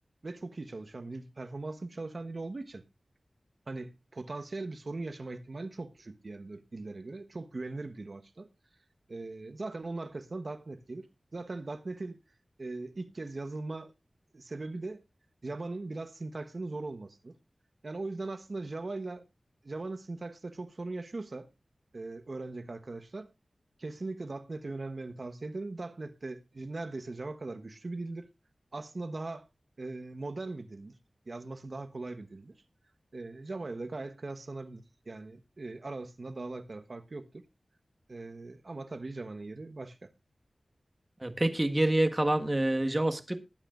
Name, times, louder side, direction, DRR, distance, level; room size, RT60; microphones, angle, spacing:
voice 1, 0.2-2.8 3.7-8.5 9.1-12.2 12.6-13.9 14.3-15.0 15.4-17.3 17.8-19.3 19.6-21.5 21.9-23.3 23.8-28.3 28.7-29.5 29.8-30.9 31.3-32.6 33.1-37.2 38.1-40.1, right 2 dB, 60° right, 1.2 m, -40 dB
voice 2, 41.2-43.4, right 1 dB, 30° right, 1.6 m, -27 dB
19.5 x 9.1 x 2.5 m
cardioid pair, 45°, 0 cm